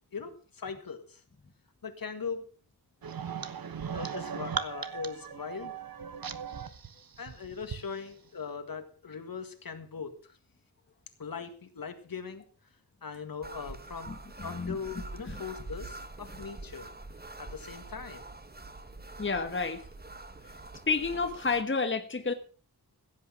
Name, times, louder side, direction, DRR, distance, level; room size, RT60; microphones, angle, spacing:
voice 1, 0.1-1.2 1.8-2.5 3.9-5.7 7.2-10.4 11.2-12.4 13.0-14.1 14.4-16.9 17.4-18.2, left 5 dB, 60° left, 8 dB, 1.9 m, -40 dB
sound 1, 3.0-7.8, right 7 dB, 65° right, 1.2 m, -38 dB
sound 2, 13.4-21.6, right 2 dB, 25° right, 1.4 m, -45 dB
voice 2, 14.1-15.4 19.2-19.8 20.9-22.3, left 4 dB, 30° left, 7 dB, 1.3 m, -31 dB
16.0 x 8.5 x 5.8 m, 0.40 s
wide cardioid pair, 125°, 39 cm